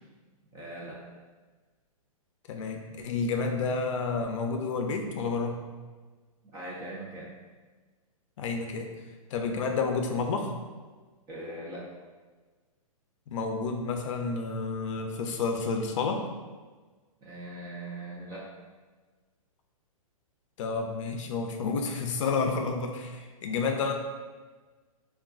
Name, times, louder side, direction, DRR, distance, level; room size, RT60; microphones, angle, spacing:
voice 1, 0.5-1.0 6.4-7.3 11.3-11.9 17.2-18.5, right 1 dB, 20° right, -5 dB, 0.4 m, -40 dB
voice 2, 2.5-5.6 8.4-8.9 9.3-10.5 13.3-16.2 20.6-23.9, left 4 dB, 55° left, 4 dB, 0.5 m, -30 dB
2.3 x 2.2 x 3.7 m, 1.4 s
hypercardioid pair, 135°, 19 cm